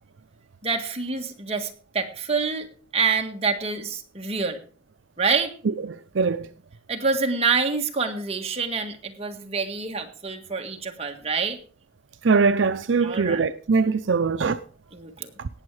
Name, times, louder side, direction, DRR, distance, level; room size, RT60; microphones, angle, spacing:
voice 1, 0.6-2.7 2.9-4.6 5.2-5.5 6.9-11.6 13.0-13.4 14.9-15.3, right 5 dB, 35° right, 1.7 m, -26 dB
voice 2, 5.8-6.5 12.2-14.6 15.4-15.5, right 4 dB, 80° right, 0.6 m, -22 dB
18.0 x 7.2 x 4.8 m
head